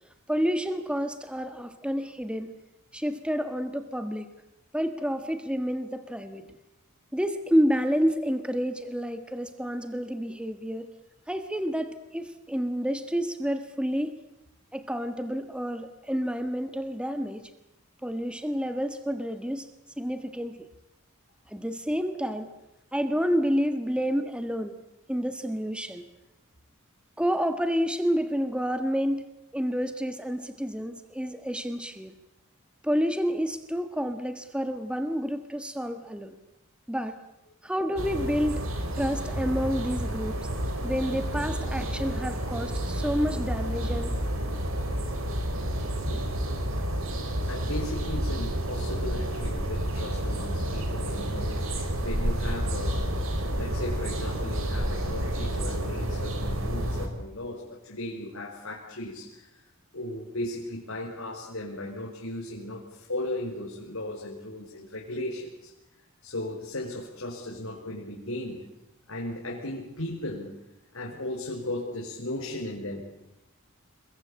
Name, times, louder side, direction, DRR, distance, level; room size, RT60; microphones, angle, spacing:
voice 1, 0.3-2.5 2.9-4.3 4.7-6.4 7.1-10.9 11.3-14.1 14.7-17.5 18.0-19.7 20.0-20.6 21.5-22.5 22.9-24.8 25.1-26.1 27.2-29.2 29.5-32.1 32.8-36.4 36.9-37.2 37.6-38.7 39.0-40.4 40.8-44.1, equal, 5° right, 9 dB, 1.5 m, -29 dB
sound 1, 38.0-57.1, right 1 dB, 75° right, 4.6 m, -30 dB
voice 2, 46.0-46.4 47.5-53.2 53.5-59.5 59.9-65.7 66.2-68.6 69.1-70.6 70.9-73.0, left 1 dB, 80° left, -3 dB, 5.2 m, -36 dB
28.0 x 22.0 x 8.7 m, 0.91 s
head